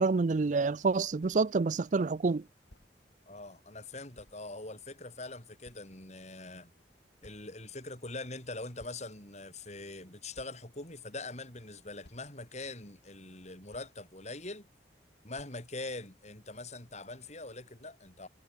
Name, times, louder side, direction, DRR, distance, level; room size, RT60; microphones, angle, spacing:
voice 1, 0.0-2.4, right 4 dB, 45° right, 0.4 m, -28 dB
sound 1, 1.2-1.4 2.3-2.4 2.7-2.9 4.2-4.4 5.0-5.1 5.6-6.2 7.2-7.8 8.3-8.4 8.8-9.4 10.0-10.1 10.3-10.7 11.6-11.7 12.0-12.3 13.3-13.4 13.7-14.0 15.0-15.1 15.4-15.6, left 1 dB, 80° left, 5.2 m, -59 dB
voice 2, 3.3-6.7 7.2-14.7 15.2-18.3, left 2 dB, 40° left, 6.3 m, -43 dB
head